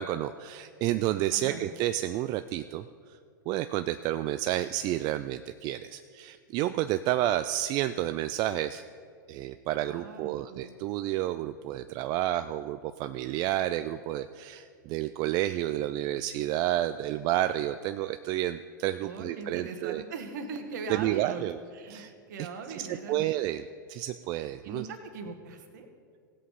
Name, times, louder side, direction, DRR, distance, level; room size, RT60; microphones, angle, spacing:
voice 1, 0.0-2.8 3.5-8.8 9.3-20.0 20.9-21.6 21.9-22.1 22.4-22.5 23.1-23.6 23.9-24.9, right 14 dB, 40° right, 11 dB, 0.4 m, -30 dB
voice 2, 1.3-1.6 9.8-10.7 19.0-21.5 21.7-23.3 24.6-25.9, right 4 dB, 65° right, 6 dB, 1.6 m, -40 dB
17.0 x 7.7 x 4.9 m, 2.2 s
hypercardioid pair, 105°, 11 cm